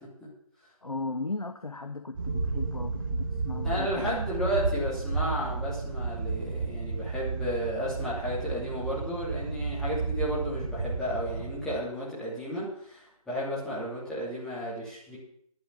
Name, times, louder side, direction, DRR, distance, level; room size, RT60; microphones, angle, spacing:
voice 1, 0.8-4.2, left 3 dB, 75° left, 8 dB, 1.1 m, -36 dB
sound 1, 2.1-11.8, right 4 dB, 35° right, 1.8 m, -32 dB
voice 2, 3.6-15.2, equal, 5° left, -8 dB, 3.0 m, -33 dB
11.5 x 7.4 x 9.6 m, 0.67 s
figure-of-eight pair, 150°, 19 cm